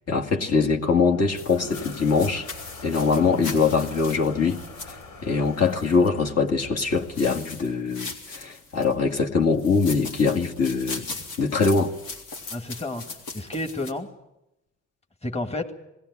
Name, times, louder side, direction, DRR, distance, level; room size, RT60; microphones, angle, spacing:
voice 1, 0.1-2.5 2.8-4.9 5.2-11.1 11.4-11.9, left 4 dB, 55° left, 1 dB, 2.3 m, -23 dB
Toilet flush, 1.1-7.3, left 2 dB, 70° left, 4.6 m, -43 dB
sound 1, 1.3-6.1 6.9-8.9 9.5-13.9, left 3 dB, 90° left, 3.6 m, -39 dB
voice 2, 12.5-14.1 15.2-15.7, left 2 dB, 20° left, 5 dB, 2.0 m, -31 dB
21.0 x 16.5 x 9.7 m, 0.90 s
cardioid pair, 90°, 30 cm